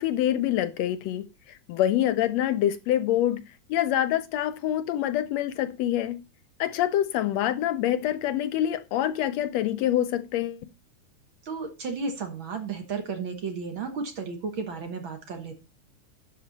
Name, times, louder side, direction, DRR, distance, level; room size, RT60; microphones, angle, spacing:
voice 1, 0.0-3.4 3.7-6.2 6.6-10.7, left 12 dB, 75° left, 1.7 m, -26 dB
voice 2, 11.4-15.5, right 4 dB, 50° right, 1.8 m, -33 dB
12.0 x 6.6 x 4.1 m
omnidirectional pair, 3.3 m